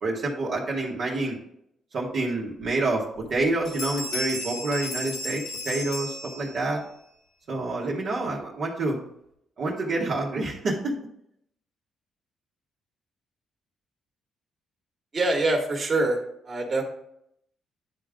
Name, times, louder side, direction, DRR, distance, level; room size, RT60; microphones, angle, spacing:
voice 1, 0.0-1.4 1.9-6.8 7.5-9.0 9.6-10.9, right 2 dB, 60° right, -5 dB, 1.5 m, -28 dB
sound 1, 2.6-2.7 3.1-3.4 3.6-6.8, left 2 dB, 90° left, 2.0 m, -34 dB
voice 2, 15.1-16.2 16.5-16.8, right 2 dB, 40° right, 1 dB, 1.8 m, -24 dB
10.5 x 3.7 x 3.6 m, 0.74 s
cardioid pair, 90°, 0 cm